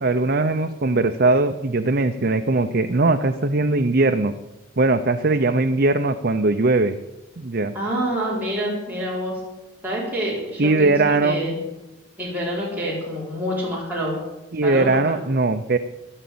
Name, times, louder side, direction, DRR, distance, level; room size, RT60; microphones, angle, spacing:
voice 1, 0.0-4.3 4.8-6.9 7.4-7.7 10.6-11.4 14.5-15.8, right 2 dB, 50° right, 7 dB, 0.7 m, -20 dB
voice 2, 7.7-9.4 9.8-11.6 12.2-14.2 14.6-15.2, equal, 10° right, -6 dB, 4.8 m, -27 dB
13.5 x 11.5 x 8.6 m, 1.1 s
head